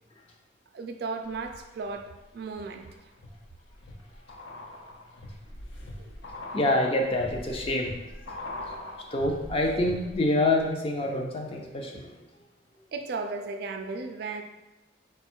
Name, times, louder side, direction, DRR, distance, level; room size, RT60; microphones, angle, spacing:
voice 1, 0.7-2.9 6.0-6.2 8.3-8.4 12.9-14.4, right 4 dB, 55° right, 6 dB, 0.3 m, -35 dB
sound 1, 1.3-2.0 2.5-10.3 10.6-10.7, left 1 dB, 75° left, 0.6 m, -42 dB
voice 2, 6.5-8.0 8.2-12.1, left 1 dB, 30° left, 1 dB, 0.4 m, -27 dB
4.2 x 2.3 x 4.3 m, 1.1 s
head